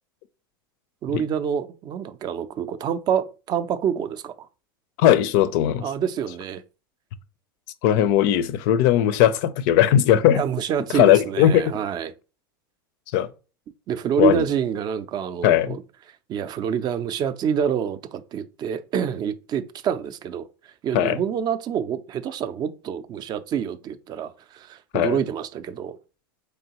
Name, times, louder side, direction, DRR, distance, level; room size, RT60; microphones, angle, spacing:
voice 1, 1.0-4.5 5.8-6.6 10.3-12.1 13.9-15.8 16.3-20.5 20.8-26.0, right 8 dB, 35° right, 0.4 m, -27 dB
voice 2, 5.0-5.9 7.8-10.4 10.9-11.7 13.1-13.3 14.2-14.4 15.4-15.8 20.9-21.2 24.9-25.2, left 11 dB, 60° left, 0.4 m, -18 dB
3.8 x 3.3 x 2.8 m
hypercardioid pair, 100°, 12 cm